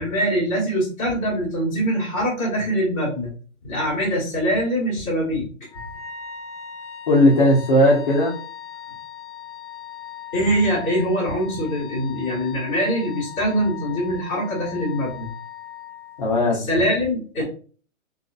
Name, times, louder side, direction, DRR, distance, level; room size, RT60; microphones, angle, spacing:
voice 1, 0.0-3.3 3.6-5.5 10.3-15.3 16.5-17.4, equal, 15° left, -7 dB, 1.0 m, -23 dB
Wind instrument woodwind instrument, 5.7-16.5, left 9 dB, 10° right, 1.1 m, -39 dB
voice 2, 7.1-8.3 16.2-16.6, left 1 dB, 35° left, -4 dB, 0.5 m, -17 dB
2.6 x 2.3 x 2.4 m, 0.40 s
hypercardioid pair, 170°, 41 cm